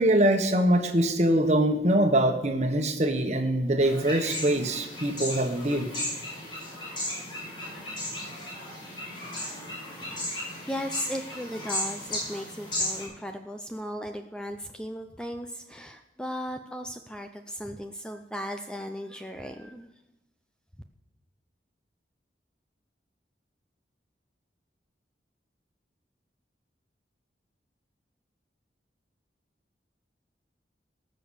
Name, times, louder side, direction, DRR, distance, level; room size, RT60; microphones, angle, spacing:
voice 1, 0.0-5.9, right 1 dB, 40° right, 6 dB, 1.4 m, -23 dB
sound 1, 3.8-13.0, left 1 dB, 25° left, 5.6 m, -35 dB
voice 2, 10.0-19.9, equal, 5° left, 6 dB, 0.6 m, -37 dB
18.0 x 6.8 x 6.5 m, 0.98 s
head